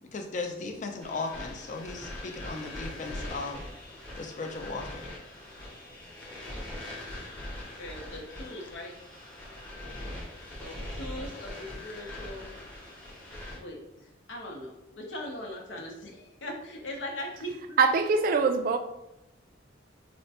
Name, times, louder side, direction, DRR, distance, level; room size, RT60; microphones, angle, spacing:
voice 1, 0.0-3.6 4.2-5.1, left 3 dB, 40° left, 0.4 m, -37 dB
sound 1, 1.0-13.6, left 1 dB, 10° left, 0.8 m, -41 dB
voice 2, 7.8-8.9 10.6-12.5 13.5-17.8, left 1 dB, 75° left, 0.7 m, -40 dB
voice 3, 17.8-18.8, right 4 dB, 45° right, 0.3 m, -23 dB
4.3 x 2.1 x 2.7 m
head